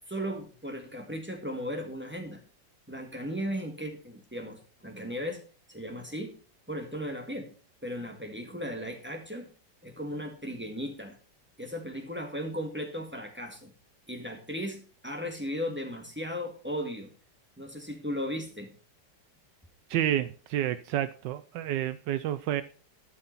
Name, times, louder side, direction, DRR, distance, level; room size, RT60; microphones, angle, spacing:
voice 1, 0.1-2.4 2.9-5.4 5.7-6.3 6.7-7.5 7.8-9.5 9.8-11.2 11.6-13.7 14.1-17.1 17.6-18.7, equal, 5° right, 3 dB, 1.6 m, -36 dB
voice 2, 19.9-22.6, right 11 dB, 75° right, 13 dB, 1.2 m, -29 dB
13.0 x 5.9 x 4.0 m, 0.39 s
omnidirectional pair, 2.0 m